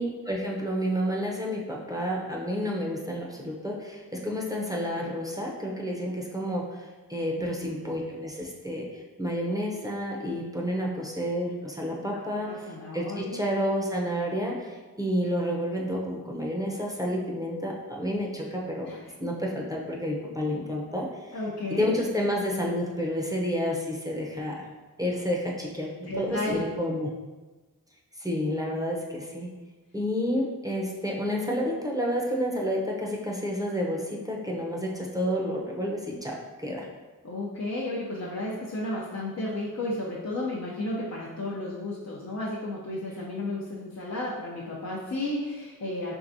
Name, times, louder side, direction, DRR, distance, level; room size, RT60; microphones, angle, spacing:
voice 1, 0.0-18.9 19.2-21.4 21.8-24.6 25.0-25.9 26.2-27.1 28.1-29.5 29.9-36.9, equal, 10° right, -2 dB, 0.7 m, -30 dB
voice 2, 12.1-13.4 18.9-19.0 21.3-21.9 26.1-26.6 37.2-46.1, left 1 dB, 50° left, -5 dB, 0.6 m, -33 dB
4.6 x 3.3 x 2.6 m, 1.2 s
wide cardioid pair, 50°, 36 cm